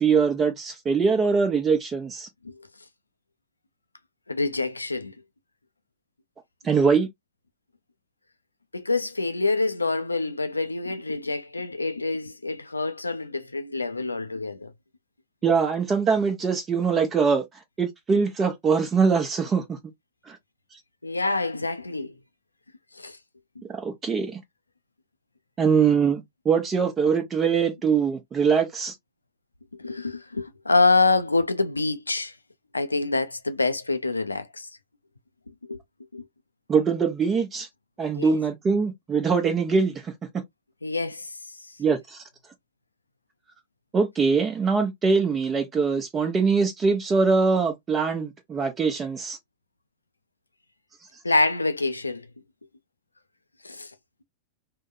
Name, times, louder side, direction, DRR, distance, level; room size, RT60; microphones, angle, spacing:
voice 1, 0.0-2.3 6.6-7.1 15.4-17.4 17.8-19.8 20.3-20.4 23.7-24.4 25.6-28.9 36.7-37.7 38.0-40.4 41.8-42.2 43.9-49.4, right 5 dB, 25° right, 0.8 m, -23 dB
voice 2, 4.3-5.1 8.7-14.7 21.0-22.1 23.0-23.2 29.8-32.3 32.7-34.7 35.7-35.8 36.1-36.2 38.2-38.3 40.8-41.3 51.2-52.2 53.6-53.9, left 3 dB, 85° left, 0.4 m, -26 dB
3.6 x 2.2 x 2.4 m
figure-of-eight pair, 95°, 0 cm